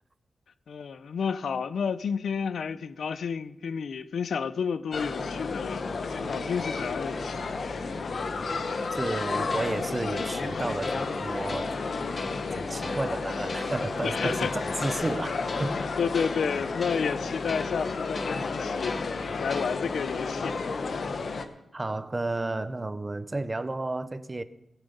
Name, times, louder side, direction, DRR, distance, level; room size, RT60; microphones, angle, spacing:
voice 1, 0.7-7.9 12.0-12.3 12.7-13.0 14.0-14.6 15.7-20.6, left 6 dB, 80° left, 0.5 m, -31 dB
sound 1, 4.9-21.5, left 4 dB, 55° left, 0.9 m, -32 dB
Piano, 6.2-14.9, right 1 dB, 5° right, 2.3 m, -44 dB
voice 2, 8.9-11.7 12.5-15.9 21.7-24.4, right 2 dB, 20° right, 0.6 m, -32 dB
sound 2, 9.5-20.1, left 3 dB, 35° left, 0.7 m, -41 dB
17.5 x 7.1 x 5.5 m
wide cardioid pair, 115°, 0 cm